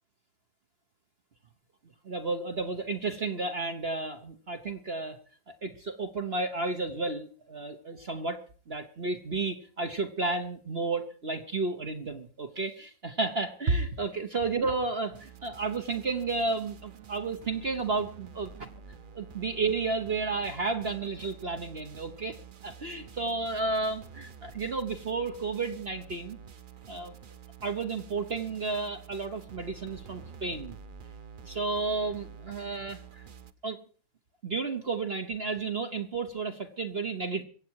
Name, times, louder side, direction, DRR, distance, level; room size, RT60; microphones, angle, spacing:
voice 1, 2.0-5.2 5.5-8.4 8.7-18.7 19.1-22.4 22.6-26.4 26.9-27.2 27.6-30.8 31.4-33.2 33.6-33.8 34.4-37.4, right 3 dB, 40° right, 6 dB, 1.2 m, -32 dB
sound 1, 15.1-33.5, right 6 dB, 55° right, 0.5 m, -49 dB
23.5 x 8.4 x 4.7 m, 0.42 s
omnidirectional pair, 1.9 m